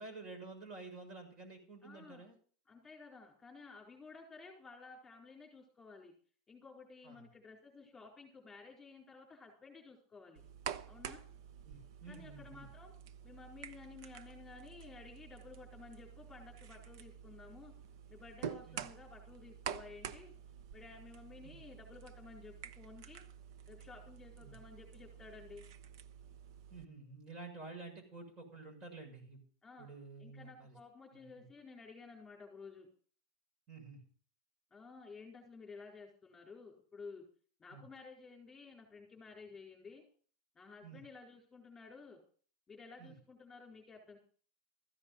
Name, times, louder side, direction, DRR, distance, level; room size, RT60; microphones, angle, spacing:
voice 1, 0.0-2.4 7.0-7.3 11.6-12.7 18.7-18.8 21.4-21.6 24.4-24.6 26.7-29.4 29.8-30.7 31.1-31.5 33.7-34.0 37.7-37.8 40.8-41.0 43.0-43.2, right 3 dB, 35° right, 4 dB, 6.6 m, -50 dB
voice 2, 1.8-2.2 2.7-6.1 6.5-10.4 10.9-11.2 12.1-12.9 13.2-17.7 18.1-20.3 20.7-23.2 23.7-25.6 29.6-29.9 30.2-32.9 34.7-37.2 37.6-40.0 40.5-42.2 42.7-44.2, left 4 dB, 15° left, 0 dB, 4.5 m, -54 dB
sound 1, 10.4-26.9, right 9 dB, 70° right, 0.9 m, -49 dB
14.5 x 10.5 x 5.4 m, 0.43 s
supercardioid pair, 135°, 2 cm